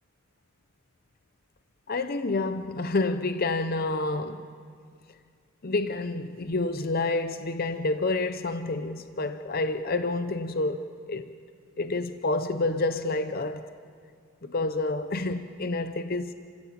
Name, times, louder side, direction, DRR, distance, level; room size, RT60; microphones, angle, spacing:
voice 1, 1.9-4.5 5.6-11.3 11.8-13.7 14.4-16.3, left 2 dB, 45° left, 0.7 m, -28 dB
29.5 x 15.0 x 8.8 m
head